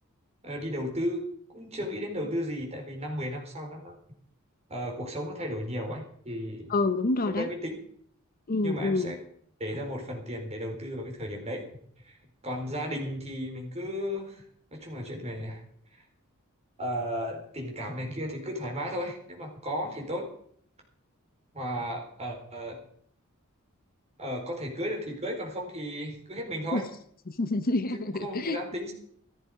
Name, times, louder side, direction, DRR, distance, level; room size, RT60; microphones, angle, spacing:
voice 1, 0.4-3.9 4.7-6.7 7.3-7.8 8.6-9.2 9.6-11.6 12.0-12.2 12.4-14.4 14.7-15.6 15.9-16.0 16.8-20.3 21.5-22.8 24.2-26.9 28.0-28.9, equal, 30° right, 1 dB, 4.4 m, -34 dB
voice 2, 6.7-7.5 8.5-9.1 26.7-26.8 27.3-28.6, left 2 dB, 40° left, 12 dB, 0.8 m, -27 dB
15.0 x 14.0 x 5.0 m, 0.62 s
head